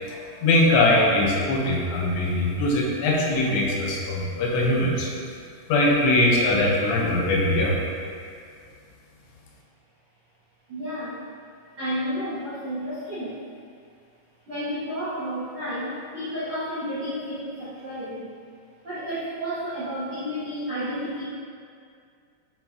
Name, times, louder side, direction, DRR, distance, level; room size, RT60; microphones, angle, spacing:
voice 1, 0.1-5.1 5.7-7.8, left 1 dB, 85° left, -2 dB, 3.0 m, -21 dB
voice 2, 10.7-11.2 11.8-13.4 14.5-18.3 18.8-21.2, equal, 70° right, -13 dB, 1.2 m, -31 dB
9.6 x 3.9 x 2.9 m, 2.3 s
omnidirectional pair, 5.0 m